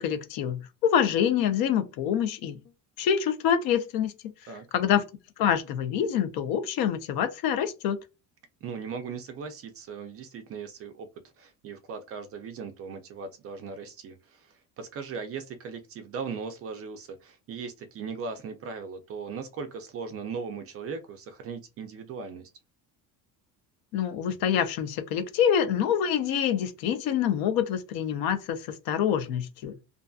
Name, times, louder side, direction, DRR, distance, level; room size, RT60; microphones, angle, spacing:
voice 1, 0.0-2.6 3.0-4.3 4.7-5.0 5.4-8.0 23.9-29.8, left 9 dB, 60° left, 0.6 m, -26 dB
voice 2, 8.6-11.1 11.4-22.5, right 5 dB, 35° right, 0.4 m, -38 dB
2.5 x 2.5 x 2.3 m
cardioid pair, 150°, 41 cm